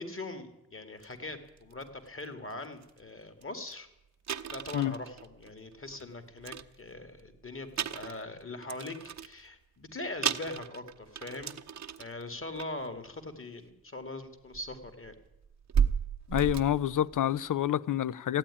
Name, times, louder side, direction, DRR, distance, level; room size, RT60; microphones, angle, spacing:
voice 1, 0.0-3.9 4.5-11.5 12.0-15.1, left 2 dB, 35° left, 2.4 m, -41 dB
sound 1, 1.0-1.1 1.6-1.8 2.5-2.6 2.8-3.0 3.4-3.5 3.7-3.8 4.3-6.0 6.4-7.3 7.7-9.4 9.9-10.0 10.2-12.2 12.5-12.9 14.0-14.1 14.5-17.5, right 7 dB, 45° right, 0.9 m, -34 dB
voice 2, 16.3-18.4, left 11 dB, 55° left, 0.6 m, -28 dB
15.5 x 8.9 x 9.9 m
cardioid pair, 60°, 38 cm